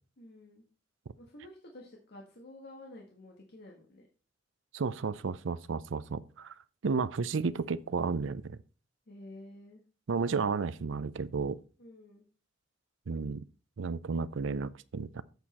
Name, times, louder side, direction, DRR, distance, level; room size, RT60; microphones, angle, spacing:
voice 1, 0.2-0.6 1.2-4.1 9.1-9.8 11.8-12.2, left 1 dB, 60° left, 1.5 m, -51 dB
voice 2, 4.7-6.5 6.8-8.6 10.1-11.6 13.1-13.4 13.8-15.2, right 4 dB, 75° right, 0.5 m, -32 dB
8.1 x 6.4 x 4.2 m
head